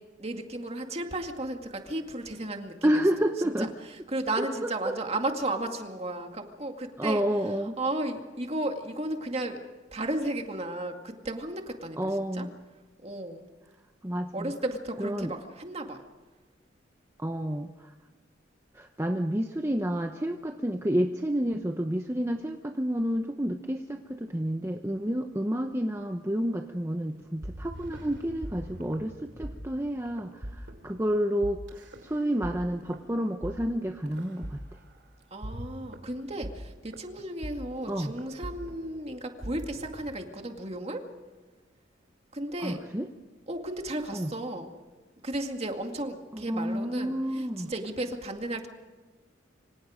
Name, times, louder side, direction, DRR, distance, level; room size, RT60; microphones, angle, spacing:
voice 1, 0.2-3.0 3.6-7.2 7.8-9.6 9.9-12.5 13.0-13.4 14.3-16.0 35.3-41.0 42.3-42.8 43.5-44.7 45.2-48.7, right 1 dB, 35° right, 4 dB, 2.2 m, -34 dB
voice 2, 2.8-3.7 4.4-5.0 7.0-7.8 12.0-12.5 14.0-14.5 15.0-15.3 17.2-17.9 18.7-34.6 37.9-38.1 42.6-43.1 44.1-44.3 46.3-47.7, equal, 15° right, 4 dB, 0.9 m, -30 dB
sound 1, 27.1-40.1, equal, 65° right, 2.8 m, -42 dB
26.0 x 25.5 x 5.1 m, 1.3 s
head